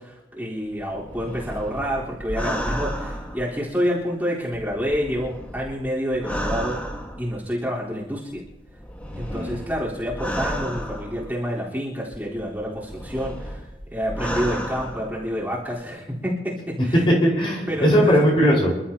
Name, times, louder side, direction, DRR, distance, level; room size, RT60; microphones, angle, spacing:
voice 1, 0.0-6.8 7.2-8.4 9.2-16.5 16.8-17.0 17.7-18.1, equal, 10° right, -8 dB, 4.0 m, -28 dB
sound 1, 0.8-4.0 4.5-7.5 8.4-11.6 12.1-15.5 15.8-15.9, equal, 10° left, 1.6 m, -32 dB
voice 2, 9.1-9.5 16.8-16.9 17.2-18.7, equal, 30° left, -3 dB, 5.0 m, -19 dB
28.0 x 13.0 x 2.9 m, 0.98 s
head